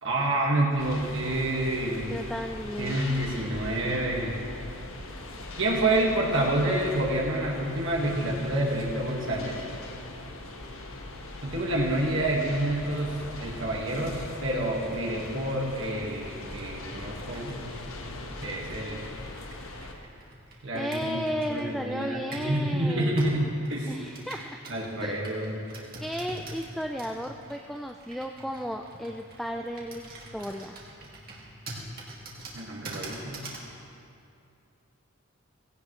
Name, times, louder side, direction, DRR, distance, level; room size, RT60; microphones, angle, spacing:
voice 1, 0.0-2.1 2.8-4.4 5.6-9.6 11.4-17.5 18.4-19.1 20.6-23.9 24.7-25.6 32.5-33.4, right 1 dB, 60° right, -3 dB, 1.8 m, -28 dB
sound 1, 0.8-19.9, left 2 dB, 75° left, 1.4 m, -40 dB
voice 2, 2.1-3.0 20.5-23.2 23.9-24.6 25.0-25.2 26.0-30.8, equal, ahead, 3 dB, 0.3 m, -34 dB
Computer keyboard, 14.7-22.6 23.2-33.7, right 2 dB, 45° right, 2.1 m, -45 dB
17.0 x 16.5 x 3.2 m, 2.5 s
head